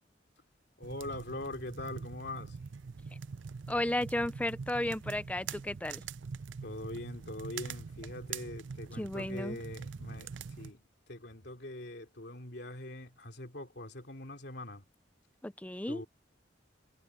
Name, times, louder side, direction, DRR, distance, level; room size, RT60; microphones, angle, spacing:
voice 1, 0.8-2.6 6.6-14.8 15.9-16.1, left 1 dB, 60° left, 3.1 m, -43 dB
sound 1, 0.8-10.7, right 5 dB, 85° right, 0.6 m, -44 dB
voice 2, 3.7-6.0 9.0-9.6 15.4-16.0, left 1 dB, 10° left, 0.6 m, -34 dB
head